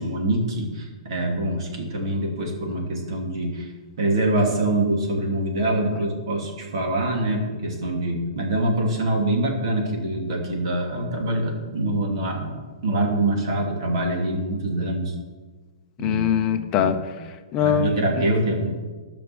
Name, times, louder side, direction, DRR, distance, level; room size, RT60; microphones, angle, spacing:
voice 1, 0.0-3.7 4.0-12.6 12.8-15.1 16.0-16.3 16.7-16.9 17.6-18.7, right 1 dB, 50° right, 0 dB, 3.0 m, -24 dB
voice 2, 16.0-18.3, left 8 dB, 20° left, 7 dB, 0.7 m, -23 dB
13.0 x 6.1 x 7.0 m, 1.4 s
hypercardioid pair, 165°, 3 cm